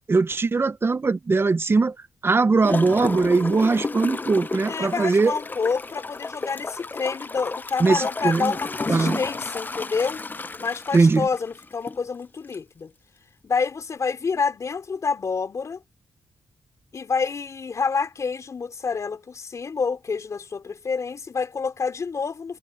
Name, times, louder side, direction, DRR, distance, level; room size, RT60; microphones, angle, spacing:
voice 1, 0.1-1.9 2.2-5.3 7.8-8.6 8.9-9.2 10.9-11.3, right 4 dB, 40° right, 1.0 m, -20 dB
Gurgling / Toilet flush, 2.6-12.0 12.5-12.6, left 3 dB, 30° left, 0.9 m, -32 dB
voice 2, 4.7-10.2 10.6-12.9 13.4-15.8 16.9-22.6, left 5 dB, 55° left, 3.7 m, -28 dB
cardioid pair, 55°, 6 cm